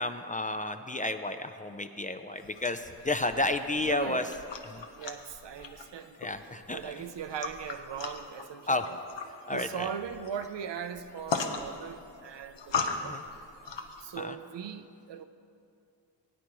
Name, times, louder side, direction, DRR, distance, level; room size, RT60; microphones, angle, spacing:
voice 1, 0.0-4.3 4.7-4.8 6.2-6.9 8.7-8.8 9.5-9.9 13.0-13.2 14.2-14.4, left 2 dB, 20° left, 7 dB, 0.4 m, -31 dB
sound 1, 2.4-14.2, left 4 dB, 75° left, 0.9 m, -39 dB
voice 2, 3.8-4.3 5.0-6.2 6.5-9.0 9.5-13.2 14.0-15.2, right 8 dB, 70° right, 9 dB, 0.6 m, -39 dB
18.0 x 9.5 x 3.1 m, 2.5 s
cardioid pair, 65°, 44 cm